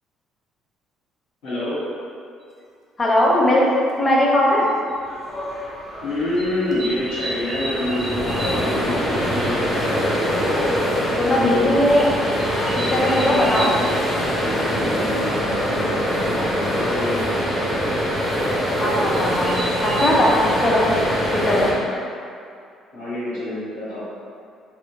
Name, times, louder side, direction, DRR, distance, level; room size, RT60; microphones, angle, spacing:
voice 1, 1.4-1.8 6.0-9.6 11.2-11.8 12.9-14.0 14.4-17.4 22.9-24.0, left 1 dB, 65° left, -10 dB, 1.1 m, -27 dB
sound 1, 2.4-2.5 3.9-4.0 4.7-4.9 6.4-8.7 9.0-9.1 9.4-9.5 9.8-9.9 10.2-10.3 11.1-11.3 12.4-13.8 15.8-15.9 16.2-16.6 18.5-18.6 19.1-20.1, right 1 dB, 35° right, 0.6 m, -32 dB
voice 2, 3.0-3.6 3.9-4.7 11.2-12.2 12.8-13.7 18.8-20.4 20.6-20.8 21.3-21.7, left 1 dB, 30° left, -4 dB, 0.7 m, -19 dB
sound 2, 5.1-21.7, equal, 10° left, 1.1 m, -24 dB
3.1 x 3.0 x 2.5 m, 2.4 s
figure-of-eight pair, 50°, 0 cm